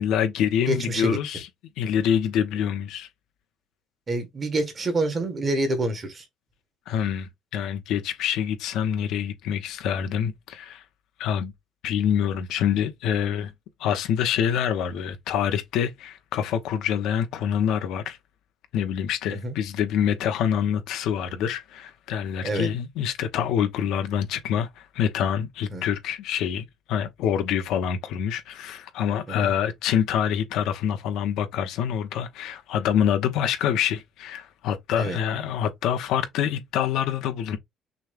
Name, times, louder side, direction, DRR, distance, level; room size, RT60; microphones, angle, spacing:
voice 1, 0.0-1.5 1.8-3.1 6.9-10.8 11.2-11.5 11.8-13.5 13.8-18.2 18.7-37.6, left 9 dB, 75° left, 1.0 m, -26 dB
voice 2, 0.6-1.2 4.1-6.3 19.3-19.6 22.4-22.7 25.7-25.8 29.3-29.5 34.9-35.2, right 2 dB, 30° right, 1.6 m, -27 dB
6.2 x 2.3 x 3.5 m
cardioid pair, 140°, 0 cm